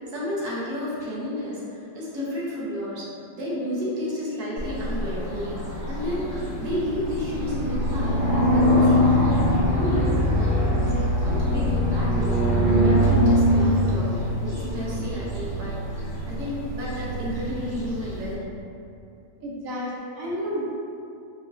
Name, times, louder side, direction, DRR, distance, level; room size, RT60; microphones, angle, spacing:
voice 1, 0.0-5.5 5.9-8.1 8.5-10.9 11.2-12.4 12.6-18.4, left 1 dB, 60° right, -7 dB, 1.1 m, -32 dB
sound 1, 4.6-18.3, equal, 30° right, 0.6 m, -23 dB
voice 2, 19.4-20.6, equal, 80° right, -6 dB, 0.7 m, -31 dB
5.1 x 2.4 x 2.4 m, 2.6 s
omnidirectional pair, 2.3 m